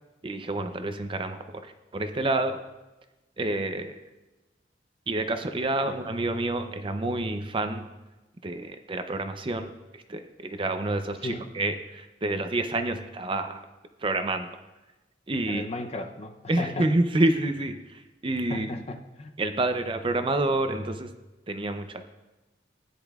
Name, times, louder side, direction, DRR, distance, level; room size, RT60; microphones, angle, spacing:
voice 1, 0.2-2.6 3.4-4.0 5.1-7.9 8.4-13.7 14.0-14.6 15.3-15.7 16.5-18.7 19.4-21.1 21.5-22.0, right 2 dB, 30° right, 7 dB, 0.6 m, -28 dB
voice 2, 15.5-16.9 18.5-19.3, left 2 dB, 35° left, 6 dB, 0.6 m, -35 dB
15.0 x 10.0 x 2.4 m, 1.1 s
head